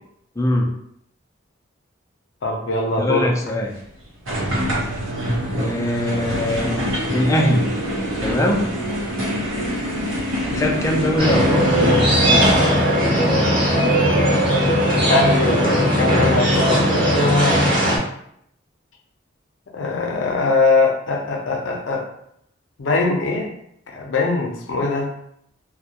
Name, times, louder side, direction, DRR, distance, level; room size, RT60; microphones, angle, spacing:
voice 1, 0.4-0.7 3.0-3.7 5.6-7.7 8.2-8.7 10.5-11.9, left 1 dB, 15° left, 0 dB, 0.3 m, -22 dB
voice 2, 2.4-3.3 14.9-17.6 19.7-22.1 22.8-23.5 23.9-25.1, left 3 dB, 70° left, 1 dB, 0.5 m, -21 dB
sound 1, 4.3-12.8, equal, 90° right, 0.8 m, -25 dB
sound 2, 11.2-18.0, equal, 25° right, 0.9 m, -17 dB
2.3 x 2.1 x 2.8 m, 0.72 s
head